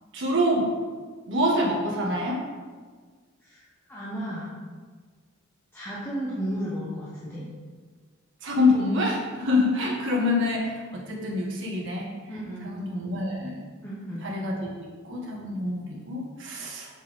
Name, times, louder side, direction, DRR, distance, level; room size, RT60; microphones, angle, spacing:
voice 1, 0.1-0.7 1.3-2.4 8.4-12.1 12.6-13.6 14.2-16.9, left 2 dB, 60° right, -3 dB, 1.7 m, -26 dB
voice 2, 3.9-4.5 5.7-7.4 12.3-12.7 13.8-14.3, equal, 10° left, -8 dB, 1.1 m, -33 dB
7.2 x 6.2 x 3.7 m, 1.5 s
head